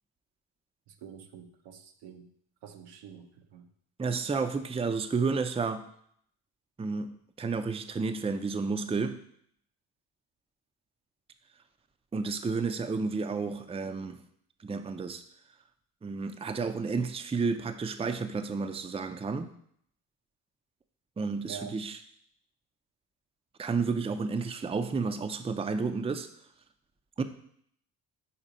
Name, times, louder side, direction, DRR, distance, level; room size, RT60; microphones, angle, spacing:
voice 1, 0.9-2.3 2.6-3.7 21.5-21.8, right 7 dB, 80° right, 5 dB, 0.8 m, -47 dB
voice 2, 4.0-5.8 6.8-9.2 12.1-14.2 14.6-15.2 16.0-19.5 21.2-22.0 23.6-26.3 27.2-27.3, right 4 dB, 15° right, 8 dB, 0.5 m, -31 dB
4.4 x 4.3 x 5.0 m, 0.66 s
supercardioid pair, 55°, 42 cm